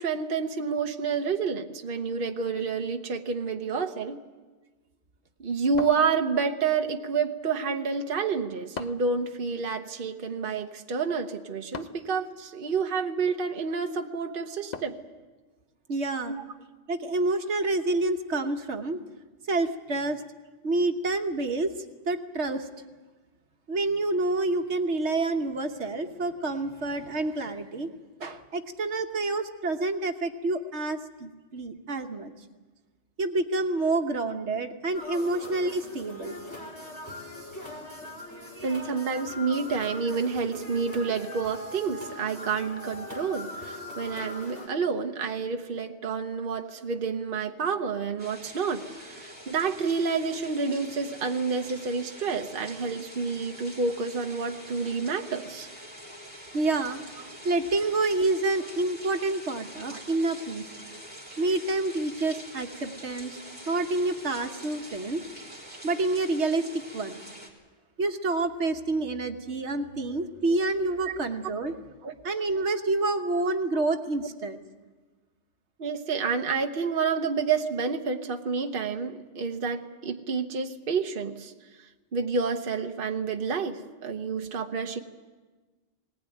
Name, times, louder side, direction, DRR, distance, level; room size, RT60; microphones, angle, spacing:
voice 1, 0.0-4.2 5.4-15.0 16.3-16.5 38.6-55.7 59.9-60.0 70.6-70.7 71.1-71.2 72.0-72.1 75.8-81.5 82.1-85.0, right 5 dB, 50° right, 5 dB, 1.2 m, -29 dB
sound 1, 5.8-6.7 8.7-9.2 11.7-12.1 14.7-15.2, left 5 dB, 40° left, 0.8 m, -40 dB
voice 2, 15.9-16.4 16.9-19.0 19.5-20.2 20.6-21.7 22.1-22.7 23.7-27.9 28.2-32.3 33.2-36.3 38.6-38.8 56.5-57.0 57.4-60.7 61.4-63.4 63.7-65.2 65.8-67.2 68.0-71.7 72.2-74.6, right 2 dB, 75° right, 6 dB, 1.5 m, -28 dB
sound 2, 34.9-44.7, left 1 dB, 15° left, 5.2 m, -41 dB
sound 3, 48.2-67.5, equal, 10° right, 3.7 m, -45 dB
19.5 x 19.5 x 9.2 m, 1.3 s
omnidirectional pair, 1.2 m